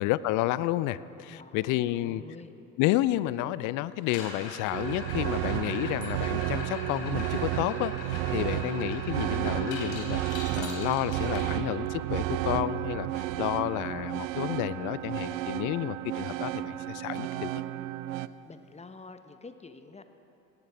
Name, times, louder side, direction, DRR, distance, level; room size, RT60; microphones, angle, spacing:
voice 1, 0.0-2.2 2.8-17.5, left 16 dB, 45° left, 17 dB, 0.5 m, -31 dB
voice 2, 1.3-2.5 18.4-20.0, left 4 dB, 15° left, 9 dB, 0.9 m, -48 dB
sound 1, 4.0-12.0 14.2-14.3 14.6-14.9 15.3-15.4 16.0-16.1 18.0-18.1, left 3 dB, 60° left, 3.6 m, -42 dB
sound 2, 4.7-18.3, right 15 dB, 65° right, 0.6 m, -32 dB
sound 3, 6.0-6.7 10.1-12.3, right 8 dB, 25° right, 1.0 m, -54 dB
18.0 x 17.5 x 3.5 m, 2.8 s
figure-of-eight pair, 65°, 43 cm